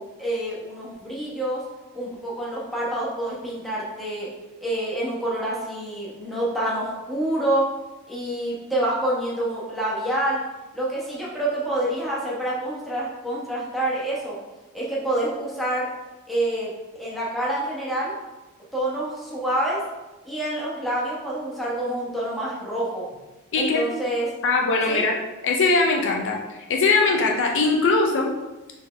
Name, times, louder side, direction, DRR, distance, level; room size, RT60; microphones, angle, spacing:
voice 1, 0.0-1.6 1.9-4.3 4.6-7.7 8.1-10.4 10.7-14.4 14.7-15.9 16.3-16.7 17.0-18.1 18.7-19.8 20.2-23.1 23.5-24.3 24.9-25.0, right 1 dB, ahead, -7 dB, 1.0 m, -27 dB
voice 2, 23.5-23.8 24.4-25.2 25.4-28.3, left 3 dB, 55° left, 1 dB, 0.5 m, -21 dB
4.0 x 3.5 x 3.3 m, 1.1 s
head